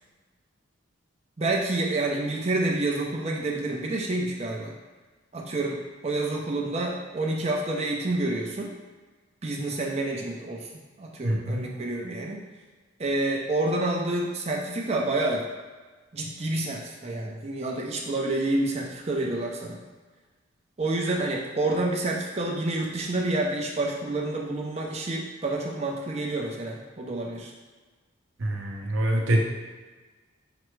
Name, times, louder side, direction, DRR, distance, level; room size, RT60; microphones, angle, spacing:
voice 1, 1.4-4.7 5.3-8.7 9.4-10.7 11.0-12.4 13.0-15.5 16.1-19.8 20.8-27.5, right 2 dB, 30° right, -1 dB, 0.5 m, -28 dB
voice 2, 11.2-11.7 28.4-29.4, right 1 dB, 70° right, 0 dB, 0.6 m, -25 dB
5.8 x 2.1 x 3.1 m, 1.4 s
head